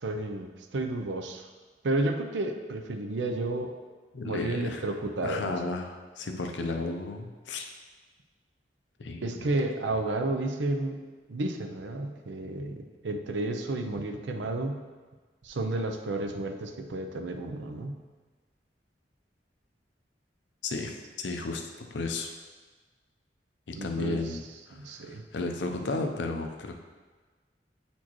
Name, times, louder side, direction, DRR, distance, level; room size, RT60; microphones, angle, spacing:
voice 1, 0.0-1.5 1.8-3.8 4.2-5.6 9.2-11.0 11.3-14.8 15.4-18.0 23.7-24.4 24.7-25.2, right 2 dB, 90° right, 5 dB, 0.6 m, -32 dB
voice 2, 4.1-4.8 5.2-7.7 9.0-9.5 20.6-22.3 23.7-26.7, left 3 dB, 85° left, 4 dB, 0.6 m, -34 dB
8.5 x 4.3 x 3.0 m, 1.4 s
head